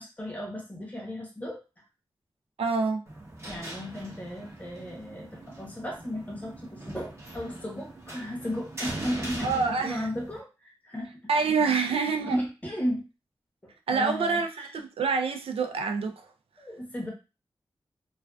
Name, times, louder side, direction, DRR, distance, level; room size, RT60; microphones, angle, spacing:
voice 1, 0.0-1.6 3.5-11.1 11.7-13.1 13.6-14.7 16.6-17.1, equal, 15° left, 0.8 m, -35 dB
voice 2, 2.6-3.0 9.4-10.1 11.3-12.4 13.9-16.2, right 4 dB, 90° right, 0.4 m, -26 dB
sound 1, 3.1-10.4, right 1 dB, 30° right, 0.6 m, -41 dB
2.4 x 2.3 x 2.3 m
wide cardioid pair, 80°, 9 cm